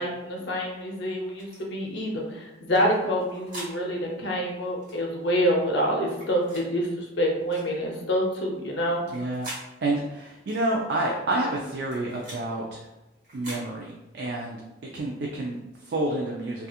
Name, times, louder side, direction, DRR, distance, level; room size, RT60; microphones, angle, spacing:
voice 1, 0.0-9.0, equal, 70° left, -1 dB, 0.6 m, -27 dB
sound 1, 1.4-1.6 2.9-3.7 4.8-5.0 6.1-6.7 7.5-7.7 8.9-9.6 10.5-10.7 11.6-12.4 13.2-13.6, right 1 dB, 45° right, 1.2 m, -42 dB
voice 2, 9.1-9.5 9.8-12.8 13.3-14.6 14.9-16.7, right 1 dB, 60° right, -2 dB, 0.4 m, -29 dB
2.8 x 2.3 x 2.3 m, 1.0 s
head